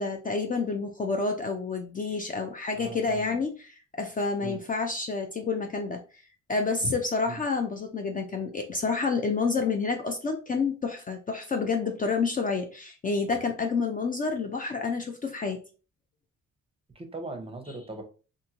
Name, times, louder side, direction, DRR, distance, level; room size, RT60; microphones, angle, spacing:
voice 1, 0.0-6.0 6.5-15.6, left 4 dB, 30° left, 3 dB, 0.4 m, -29 dB
voice 2, 2.7-3.4 4.4-4.6 7.3-7.4 16.9-18.0, right 3 dB, 20° right, 4 dB, 0.7 m, -39 dB
2.6 x 2.6 x 2.8 m, 0.35 s
cardioid pair, 90°, 30 cm